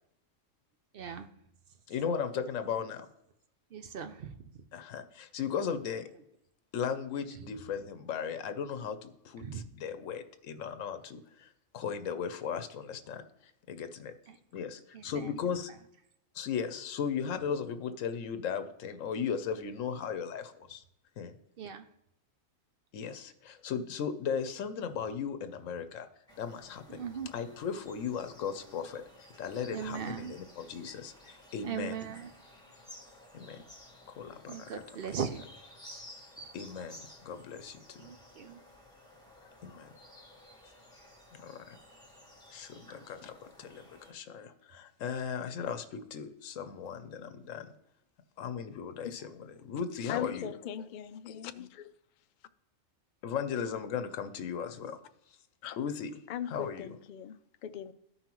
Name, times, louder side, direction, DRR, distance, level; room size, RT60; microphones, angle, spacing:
voice 1, 0.9-1.3 3.7-4.6 7.4-7.5 9.4-9.7 14.3-14.4 14.9-15.4 21.6-21.9 26.9-27.3 29.7-30.3 31.6-32.3 34.5-35.4 38.0-38.6, right 7 dB, 60° right, 8 dB, 0.7 m, -39 dB
voice 2, 1.9-3.1 4.7-6.1 6.7-11.5 11.7-13.2 13.7-14.1 14.5-15.7 16.3-20.8 21.2-21.4 22.9-26.1 26.4-27.0 27.3-31.9 33.3-33.6 34.1-34.7 36.5-38.0 39.6-39.9 41.4-41.8 42.5-47.7 48.4-50.5 53.2-55.0 55.8-56.1 56.5-56.9, left 7 dB, 90° left, 10 dB, 1.0 m, -37 dB
sound 1, 26.3-44.1, left 1 dB, 5° left, 1.4 m, -54 dB
voice 3, 50.0-51.8 55.6-55.8 56.3-57.9, left 10 dB, 70° left, 10 dB, 0.4 m, -40 dB
13.5 x 5.5 x 3.0 m, 0.76 s
omnidirectional pair, 1.3 m